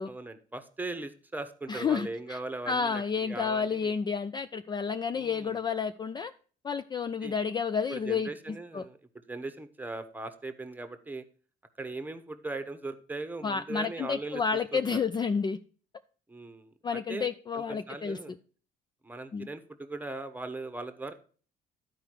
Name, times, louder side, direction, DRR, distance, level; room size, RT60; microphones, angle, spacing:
voice 1, 0.1-3.9 5.2-5.6 7.2-7.3 7.9-9.0 9.3-11.2 11.8-14.4 14.7-15.0 16.3-17.3 17.5-18.3 19.0-21.1, right 2 dB, 10° right, 1.0 m, -39 dB
voice 2, 1.7-2.4 2.7-6.3 6.6-8.9 13.4-15.6 16.8-18.4 19.3-19.5, left 5 dB, 25° left, 0.4 m, -30 dB
11.5 x 4.8 x 4.6 m
cardioid pair, 110°, 17 cm